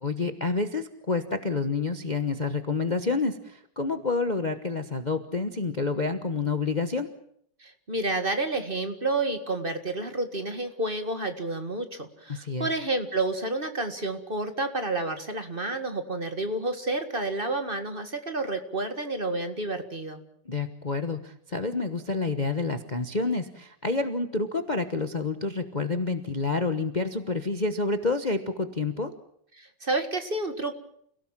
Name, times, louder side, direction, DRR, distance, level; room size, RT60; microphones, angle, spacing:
voice 1, 0.0-7.1 12.3-12.7 20.5-29.1, left 3 dB, 25° left, 8 dB, 1.1 m, -28 dB
voice 2, 7.6-20.2 29.6-30.7, right 2 dB, 30° right, 7 dB, 2.0 m, -30 dB
29.0 x 17.0 x 7.4 m, 0.67 s
omnidirectional pair, 2.0 m